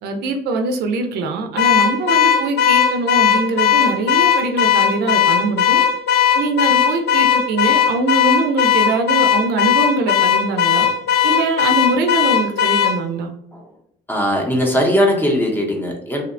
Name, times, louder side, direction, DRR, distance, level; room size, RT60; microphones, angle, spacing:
voice 1, 0.0-5.8 6.3-10.9 11.2-13.3, right 3 dB, 75° right, 5 dB, 0.4 m, -22 dB
Car / Alarm, 1.6-13.0, left 8 dB, 75° left, 0.4 m, -16 dB
voice 2, 14.1-16.2, equal, 10° left, 1 dB, 0.7 m, -19 dB
2.7 x 2.1 x 2.5 m, 0.72 s
cardioid pair, 110°, 17 cm